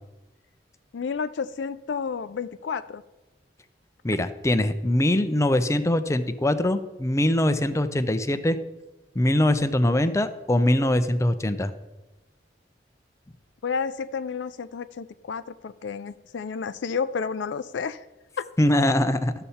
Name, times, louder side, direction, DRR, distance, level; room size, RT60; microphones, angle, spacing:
voice 1, 0.9-3.0 13.6-18.0 18.4-18.5, left 5 dB, 75° left, 14 dB, 0.4 m, -31 dB
voice 2, 4.0-8.6 9.2-11.7 18.6-19.3, left 1 dB, 15° left, 10 dB, 0.5 m, -22 dB
12.5 x 6.8 x 4.2 m, 1.1 s
head